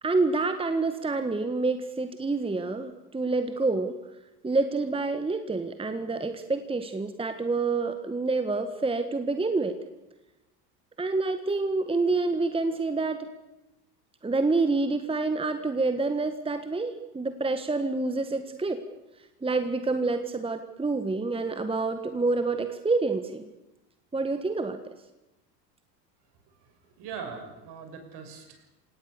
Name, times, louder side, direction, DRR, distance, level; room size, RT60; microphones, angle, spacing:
voice 1, 0.0-4.0 4.4-9.8 11.0-13.3 14.2-18.8 19.4-23.5 24.1-24.8, right 3 dB, 10° right, 9 dB, 1.6 m, -27 dB
voice 2, 27.0-28.7, right 6 dB, 50° right, 6 dB, 6.1 m, -40 dB
27.5 x 18.0 x 6.9 m, 0.96 s
hypercardioid pair, 75°, 50 cm